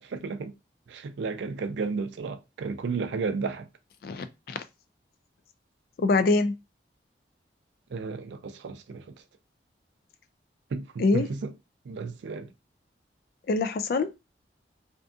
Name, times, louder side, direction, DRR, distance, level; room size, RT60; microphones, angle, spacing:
voice 1, 0.0-0.5 0.9-3.7 7.9-9.2 10.7-11.5 11.8-12.5, right 4 dB, 85° right, 0.4 m, -33 dB
voice 2, 4.0-4.6 6.0-6.5 11.0-11.3 13.5-14.1, left 3 dB, 55° left, 0.3 m, -24 dB
2.5 x 2.5 x 2.4 m
head